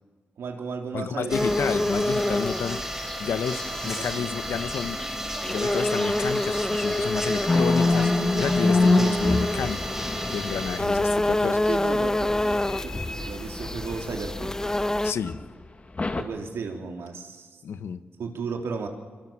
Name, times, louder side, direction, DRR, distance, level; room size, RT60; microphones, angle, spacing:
voice 1, 0.4-1.6 3.7-4.9 11.7-14.7 16.1-17.6 18.2-18.9, right 5 dB, 80° right, 3 dB, 3.6 m, -35 dB
voice 2, 0.9-2.8 3.2-5.0 5.5-8.1 8.4-9.8 10.3-11.7 15.0-15.4 17.6-18.0, left 7 dB, 85° left, 12 dB, 1.3 m, -30 dB
sound 1, 1.3-15.1, left 1 dB, 15° left, 0.7 m, -28 dB
sound 2, 1.3-10.8, right 1 dB, 10° right, 4.9 m, -34 dB
sound 3, 7.5-11.0 12.3-14.6 15.2-15.4 16.0-16.2, left 2 dB, 30° left, 2.1 m, -25 dB
24.0 x 24.0 x 7.5 m, 1.5 s
cardioid pair, 65°, 4 cm